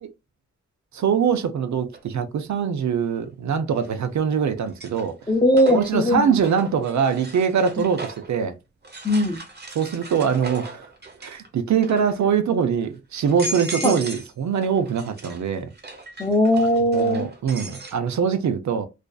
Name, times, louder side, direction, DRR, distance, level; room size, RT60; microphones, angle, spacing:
voice 1, 0.9-5.1 5.7-8.6 9.8-10.9 11.2-15.7 16.9-18.9, right 7 dB, 70° right, 0.5 m, -23 dB
sound 1, 1.9-2.0 3.7-4.2 4.6-8.3 8.8-11.5 11.8-12.3 12.8-12.9 13.2-14.3 14.6-18.0, right 2 dB, 35° right, 0.7 m, -37 dB
voice 2, 5.3-6.3 7.8-7.9 9.0-9.4 13.8-14.0 16.2-17.3, left 1 dB, 15° left, 0.5 m, -19 dB
2.5 x 2.4 x 2.2 m
wide cardioid pair, 115°, 29 cm